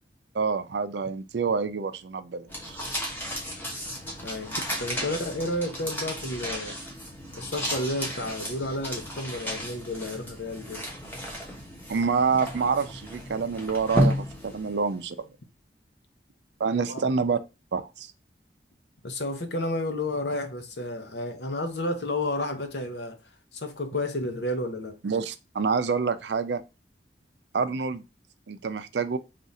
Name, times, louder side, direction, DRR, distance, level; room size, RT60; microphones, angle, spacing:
voice 1, 0.3-2.8 11.9-15.3 16.6-17.4 17.7-18.1 25.0-26.6 27.5-28.0 28.5-29.2, right 5 dB, 75° right, 0.5 m, -27 dB
sound 1, 2.5-15.1, equal, 10° left, 1.0 m, -33 dB
voice 2, 4.2-6.8 7.4-10.8 16.9-17.0 19.0-23.2 23.5-25.0, left 1 dB, 75° left, 0.8 m, -31 dB
3.7 x 2.5 x 4.1 m
head